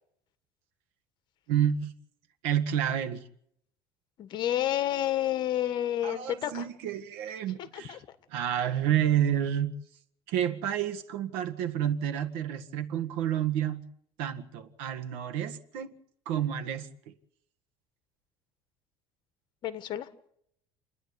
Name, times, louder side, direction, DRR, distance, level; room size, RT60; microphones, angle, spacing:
voice 1, 1.5-1.9 2.4-3.2 6.0-8.0 8.3-9.7 10.3-13.8 14.2-16.0 16.3-17.1, right 10 dB, 85° right, 1.7 m, -29 dB
voice 2, 4.2-6.6 7.7-8.0 19.6-20.1, left 12 dB, 50° left, 1.6 m, -30 dB
29.0 x 10.5 x 9.4 m
cardioid pair, 140°, 10 cm